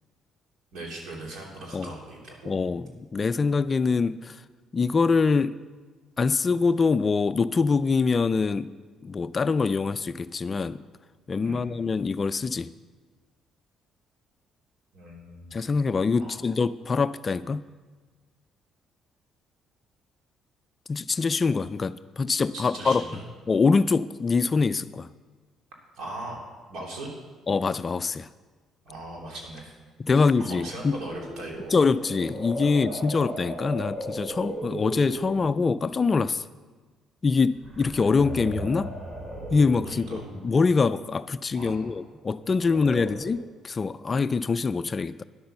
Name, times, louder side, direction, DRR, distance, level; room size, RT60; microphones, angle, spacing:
voice 1, 0.7-2.6 11.4-11.7 14.9-15.5 16.2-16.4 22.5-23.2 25.9-26.4 26.7-27.1 28.8-29.7 30.1-31.8 33.1-33.3 39.8-40.2 41.5-41.9 42.7-43.1, right 1 dB, 70° right, -1 dB, 3.1 m, -39 dB
voice 2, 2.5-4.4 4.7-5.6 6.2-8.7 9.0-10.8 11.3-12.7 15.5-17.6 20.9-23.0 23.5-25.1 27.5-28.3 30.0-31.0 31.7-36.5 37.2-38.9 39.5-45.2, left 4 dB, 30° left, 14 dB, 0.3 m, -24 dB
sound 1, 30.8-35.8 37.5-40.6 42.4-43.4, right 1 dB, 35° right, 3.0 m, -37 dB
10.5 x 8.7 x 6.8 m, 1.4 s
cardioid pair, 120°, 0 cm